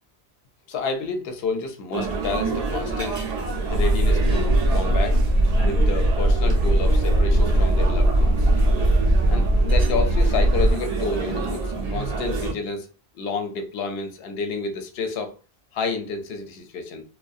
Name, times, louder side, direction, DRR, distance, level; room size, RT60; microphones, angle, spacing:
voice 1, 0.7-3.2 3.7-5.2 5.6-8.5 9.3-12.9 13.1-15.3 15.7-17.0, left 4 dB, 75° left, 0.8 m, -30 dB
sound 1, 1.9-12.5, right 4 dB, 50° right, 0.5 m, -28 dB
sound 2, 3.7-10.7, right 1 dB, 75° right, 0.8 m, -19 dB
2.5 x 2.1 x 2.3 m
omnidirectional pair, 1.1 m